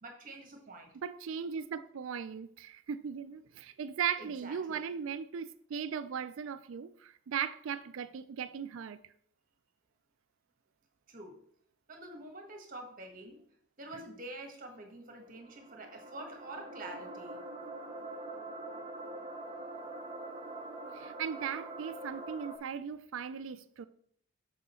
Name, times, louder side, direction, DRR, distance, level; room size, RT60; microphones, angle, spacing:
voice 1, 0.0-0.9 4.2-4.9 11.1-11.4 11.9-13.4 13.8-17.4, right 1 dB, 40° right, 1.4 m, -47 dB
voice 2, 1.0-9.0 20.9-23.9, right 7 dB, 65° right, 0.4 m, -38 dB
sound 1, 15.1-22.6, right 2 dB, 25° right, 0.8 m, -44 dB
6.4 x 6.2 x 4.3 m
head